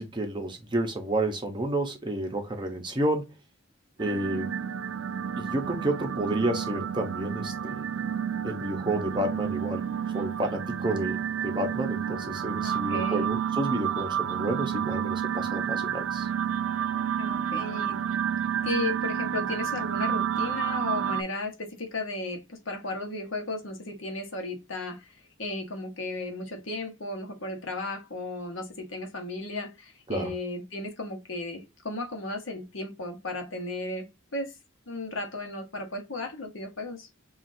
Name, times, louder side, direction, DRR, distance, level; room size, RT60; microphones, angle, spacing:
voice 1, 0.0-3.3 4.0-4.5 5.4-7.8 8.4-9.8 10.1-11.2 11.4-16.3 30.1-30.3, right 1 dB, 20° right, 0.7 m, -30 dB
sound 1, 4.0-21.2, right 9 dB, 65° right, 0.3 m, -30 dB
voice 2, 12.6-13.3 17.2-18.0 18.6-25.1 25.4-34.1 34.3-34.5 34.9-37.1, left 2 dB, 65° left, 1.0 m, -34 dB
5.8 x 2.4 x 2.6 m
head